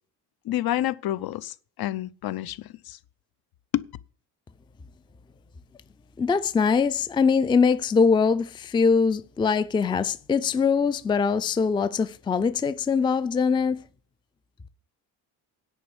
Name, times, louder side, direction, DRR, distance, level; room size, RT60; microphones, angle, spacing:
voice 1, 0.4-3.0 3.7-3.8, left 13 dB, 65° left, 0.7 m, -29 dB
voice 2, 6.2-13.8, left 5 dB, 15° left, 0.4 m, -22 dB
10.0 x 5.4 x 7.9 m
cardioid pair, 175°, 39 cm